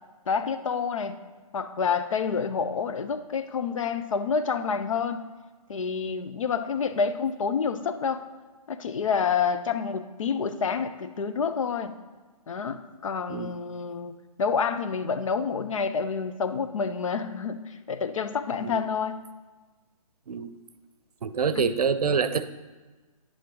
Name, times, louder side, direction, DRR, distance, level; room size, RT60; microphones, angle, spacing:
voice 1, 0.3-1.2 1.5-5.3 5.7-8.2 8.7-12.0 12.5-19.2 21.5-21.7, left 6 dB, 60° left, 10 dB, 0.7 m, -28 dB
voice 2, 21.2-22.5, right 6 dB, 90° right, 12 dB, 0.7 m, -26 dB
10.0 x 8.5 x 3.9 m, 1.3 s
hypercardioid pair, 165°, 19 cm